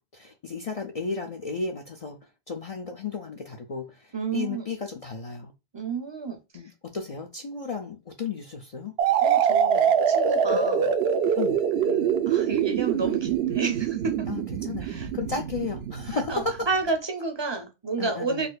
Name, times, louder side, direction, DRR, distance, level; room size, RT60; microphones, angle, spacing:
voice 1, 0.1-2.2 2.5-5.5 6.5-9.0 10.5-10.6 11.4-11.5 14.3-16.7 18.0-18.5, left 4 dB, 45° left, 0.5 m, -33 dB
voice 2, 4.1-4.6 5.7-6.4 9.2-10.9 11.8-14.3 14.8-15.1 16.1-18.5, right 4 dB, 30° right, 0.6 m, -31 dB
sound 1, 9.0-16.7, right 7 dB, 80° right, 0.8 m, -24 dB
4.2 x 2.6 x 2.3 m
omnidirectional pair, 1.1 m